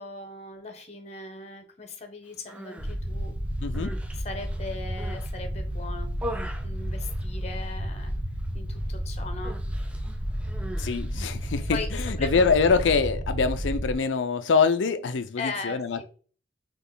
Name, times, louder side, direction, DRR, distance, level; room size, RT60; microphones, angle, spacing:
voice 1, 0.0-3.3 4.1-6.1 6.6-8.1 8.5-9.6 11.7-11.9 12.2-12.3 15.4-16.1, left 3 dB, 35° left, 0.9 m, -38 dB
Human voice, 2.3-3.0 3.5-5.3 5.8-7.8 8.0-8.5 8.7-9.0 9.4-13.1, equal, 5° right, 0.4 m, -42 dB
sound 1, 2.8-13.9, equal, 35° right, 0.9 m, -32 dB
voice 2, 3.6-4.0 10.8-16.1, left 5 dB, 85° left, 0.5 m, -24 dB
4.0 x 3.0 x 3.8 m
head